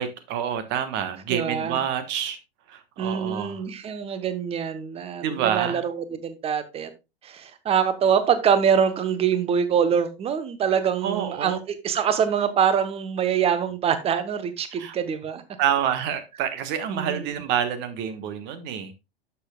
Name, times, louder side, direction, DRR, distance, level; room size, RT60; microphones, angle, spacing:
voice 1, 0.0-2.4 2.7-3.6 5.2-5.8 11.0-11.6 14.7-15.0 15.6-18.9, right 9 dB, 35° right, 1.4 m, -27 dB
voice 2, 1.3-1.8 3.0-6.9 7.2-15.4 16.9-17.4, right 7 dB, 20° right, 1.0 m, -24 dB
11.5 x 7.1 x 2.3 m
figure-of-eight pair, 100°, 32 cm